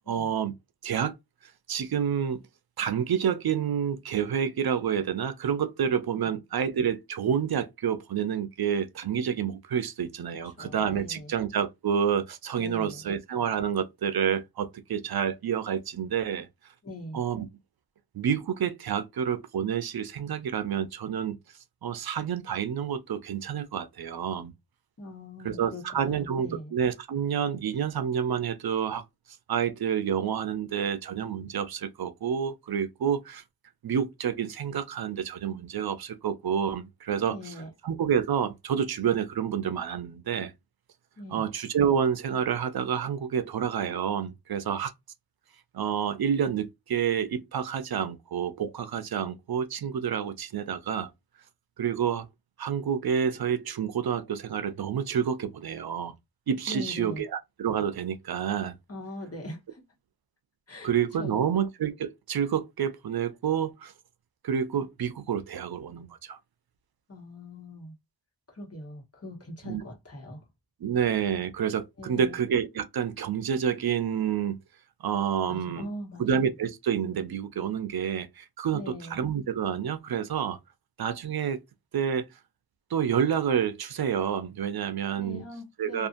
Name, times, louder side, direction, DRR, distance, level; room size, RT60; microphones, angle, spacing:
voice 1, 0.1-0.5 0.8-1.1 1.4-2.5 2.8-16.5 17.1-17.5 18.1-21.4 21.8-24.5 25.4-29.0 29.5-33.4 33.8-37.5 37.8-40.5 41.3-44.9 45.7-51.1 51.8-52.3 52.6-56.1 56.5-58.7 60.8-63.9 64.4-66.4 69.7-69.8 70.8-74.6 75.0-75.9 76.2-80.6 81.0-81.6 81.9-82.3 82.9-85.4 85.8-86.1, right 8 dB, 75° right, 0.5 m, -29 dB
voice 2, 10.6-11.3 12.6-13.1 16.8-17.2 25.0-26.7 37.3-37.7 41.2-41.5 56.7-57.2 58.9-59.8 60.7-60.9 61.2-61.4 67.1-67.9 68.5-70.4 72.0-72.3 75.5-76.2 78.7-79.2 85.2-86.1, left 1 dB, 40° left, 1.1 m, -41 dB
2.7 x 2.4 x 2.5 m
wide cardioid pair, 55°, 37 cm